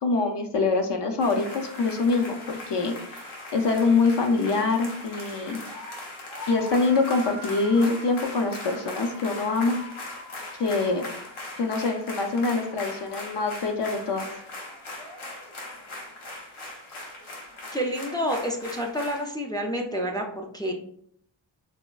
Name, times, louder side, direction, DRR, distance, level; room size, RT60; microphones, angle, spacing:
voice 1, 0.0-2.9 3.5-5.6 6.5-9.8 10.6-11.1 11.6-14.3, left 3 dB, 60° left, 4 dB, 0.5 m, -24 dB
sound 1, 1.2-19.3, left 2 dB, 85° left, 1.0 m, -39 dB
voice 2, 17.7-20.7, equal, 10° left, 1 dB, 0.3 m, -29 dB
4.2 x 2.2 x 2.3 m, 0.67 s
wide cardioid pair, 115°, 48 cm